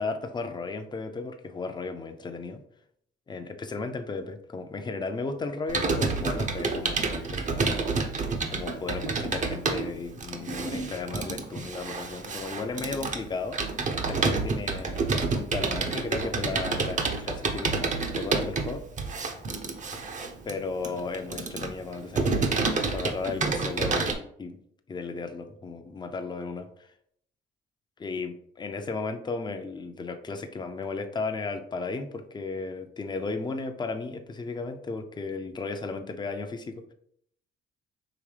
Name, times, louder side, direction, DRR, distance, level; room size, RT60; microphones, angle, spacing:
voice 1, 0.0-2.6 3.3-7.7 8.5-13.6 14.0-15.1 15.3-18.8 20.5-24.6 24.9-26.7 28.0-36.8, left 4 dB, 20° left, 6 dB, 0.5 m, -35 dB
Computer keyboard, 5.7-24.1, right 4 dB, 40° right, 0.7 m, -29 dB
4.9 x 3.2 x 3.3 m, 0.69 s
cardioid pair, 90°, 20 cm